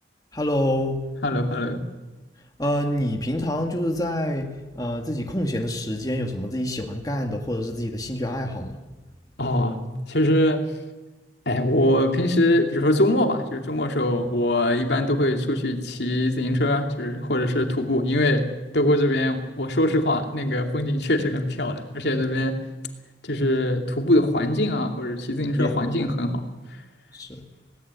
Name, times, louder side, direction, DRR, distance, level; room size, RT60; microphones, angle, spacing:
voice 1, 0.3-1.0 2.6-8.7 25.6-25.9 27.1-27.4, left 1 dB, 20° left, 2 dB, 2.1 m, -27 dB
voice 2, 1.2-1.8 9.4-9.8 10.1-10.6 11.5-18.5 18.7-22.6 23.2-26.4, left 1 dB, 70° left, 4 dB, 2.7 m, -22 dB
18.5 x 17.5 x 9.6 m, 1.1 s
head